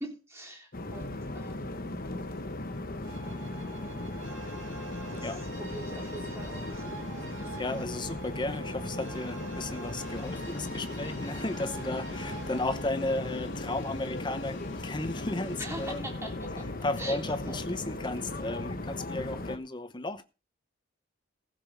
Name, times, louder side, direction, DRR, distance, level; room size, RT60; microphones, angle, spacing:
voice 1, 0.0-1.9 5.1-6.8 15.6-16.7 17.0-17.6, right 1 dB, 15° right, 3.5 m, -42 dB
sound 1, 0.7-19.6, left 2 dB, 45° left, 1.2 m, -37 dB
sound 2, 3.0-12.6, right 4 dB, 70° right, 2.2 m, -46 dB
voice 2, 7.6-16.1 16.8-20.2, left 2 dB, 20° left, 0.9 m, -34 dB
sound 3, 10.0-16.0, left 2 dB, 65° left, 1.3 m, -48 dB
15.5 x 6.7 x 5.3 m
head